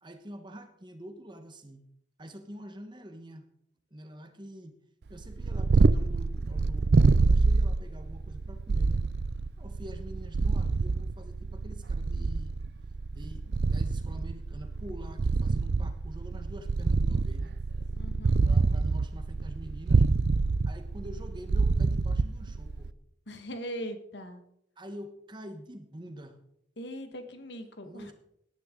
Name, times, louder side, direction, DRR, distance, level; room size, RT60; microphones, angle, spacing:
voice 1, 0.0-1.8 2.2-3.5 3.9-4.8 5.1-9.0 9.6-12.6 13.1-17.5 18.4-20.1 20.6-22.9 24.8-26.4 27.8-28.1, equal, 25° right, 7 dB, 1.3 m, -46 dB
Purr, 5.2-22.9, right 3 dB, 60° right, 0.5 m, -26 dB
voice 2, 17.9-18.4 23.3-24.4 26.8-28.1, equal, 70° left, 7 dB, 1.6 m, -40 dB
18.5 x 10.0 x 3.8 m, 0.76 s
head